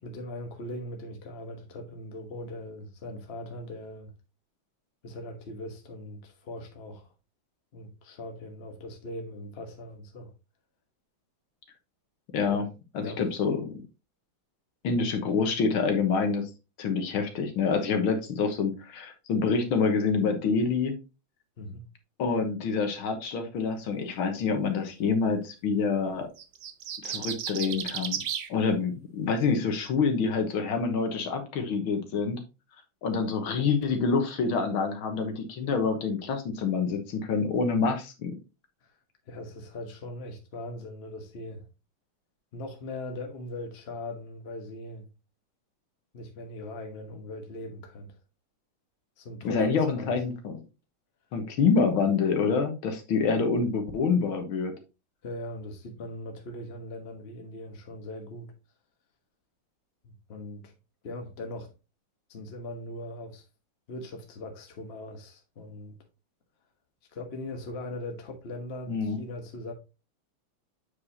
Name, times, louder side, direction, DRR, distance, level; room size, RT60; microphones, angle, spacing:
voice 1, 0.0-4.1 5.0-7.1 7.7-10.3 12.5-12.7 13.0-13.2 21.6-21.8 39.3-41.6 42.5-45.1 46.1-48.1 49.2-50.2 55.2-58.5 60.0-60.7 61.0-61.7 62.3-63.4 63.9-66.0 67.1-69.7, left 1 dB, 35° left, 1.2 m, -40 dB
voice 2, 12.3-12.6 12.9-13.8 14.8-16.5 16.8-20.9 22.2-26.3 27.0-28.2 28.5-32.4 33.0-38.3 49.4-50.6 51.3-54.7 68.9-69.2, left 5 dB, 75° left, 1.9 m, -27 dB
sound 1, 26.4-28.5, right 9 dB, 65° right, 1.1 m, -33 dB
8.2 x 4.9 x 2.8 m
omnidirectional pair, 2.3 m